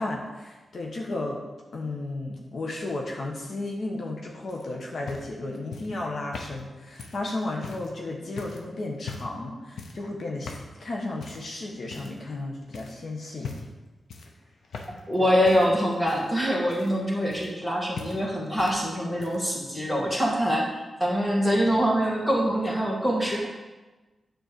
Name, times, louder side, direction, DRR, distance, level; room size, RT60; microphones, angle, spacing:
voice 1, 0.0-1.4 1.7-10.5 10.8-13.5 15.2-15.3, left 2 dB, 65° left, 0 dB, 1.3 m, -33 dB
sound 1, 4.5-7.9 8.4-8.7 9.0-9.4 9.8-10.1 10.4-10.7 11.2-11.5 11.9-12.4 12.7-13.0 13.4-13.8 14.1-15.2 15.4-17.7 18.0-18.8 19.1-19.5 20.5-20.6, left 4 dB, 85° left, 1.0 m, -41 dB
voice 2, 15.1-20.7 21.0-23.5, equal, 10° left, -2 dB, 2.1 m, -24 dB
9.2 x 4.4 x 6.9 m, 1.2 s
wide cardioid pair, 105°, 0 cm